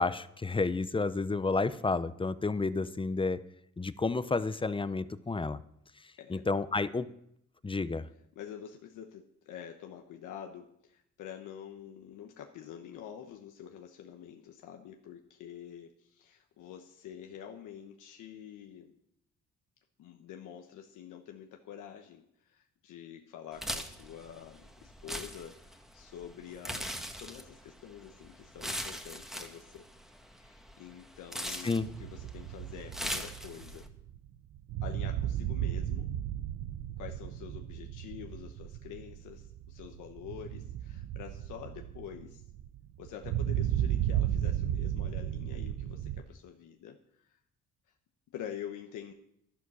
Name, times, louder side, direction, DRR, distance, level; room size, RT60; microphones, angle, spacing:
voice 1, 0.0-3.4 3.8-5.6 6.3-7.1 7.6-8.1 31.6-31.9, left 3 dB, 15° left, 14 dB, 0.7 m, -30 dB
voice 2, 8.3-19.0 20.0-29.9 30.3-33.9 34.8-36.1 37.0-42.4 43.0-47.4 48.3-49.1, left 9 dB, 85° left, 4 dB, 1.2 m, -47 dB
sound 1, 23.5-33.9, equal, ahead, 1.6 m, -41 dB
sound 2, 31.9-46.2, right 11 dB, 85° right, 0.8 m, -35 dB
12.0 x 11.5 x 6.3 m, 0.74 s
cardioid pair, 90°, 30 cm